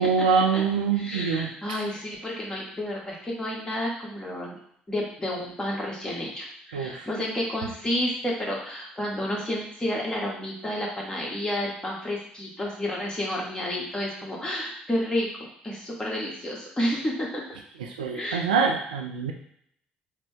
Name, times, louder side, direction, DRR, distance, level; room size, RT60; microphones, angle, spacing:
voice 1, 0.0-1.5 6.7-7.1 18.0-19.3, right 5 dB, 85° right, 2 dB, 0.4 m, -24 dB
voice 2, 1.0-4.6 4.9-17.4 18.1-18.4, left 1 dB, 20° left, -3 dB, 1.4 m, -30 dB
3.7 x 2.2 x 3.5 m, 0.68 s
hypercardioid pair, 50°, 4 cm